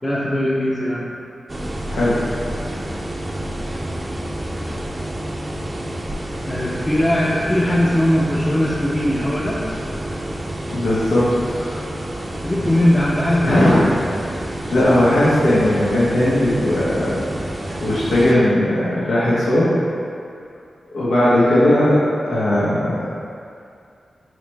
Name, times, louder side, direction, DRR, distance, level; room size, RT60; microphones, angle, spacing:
voice 1, 0.0-1.1 6.5-9.6 12.4-13.6, left 1 dB, 20° left, -7 dB, 0.6 m, -19 dB
sound 1, 1.5-18.3, right 1 dB, 30° right, 0.5 m, -29 dB
voice 2, 1.9-2.3 3.6-3.7 10.7-11.8 13.4-13.8 14.7-17.3 17.8-19.8 20.9-22.0 22.2-23.0, left 1 dB, 85° left, -9 dB, 0.8 m, -17 dB
4.9 x 3.1 x 3.3 m, 2.4 s
cardioid pair, 45°, 0 cm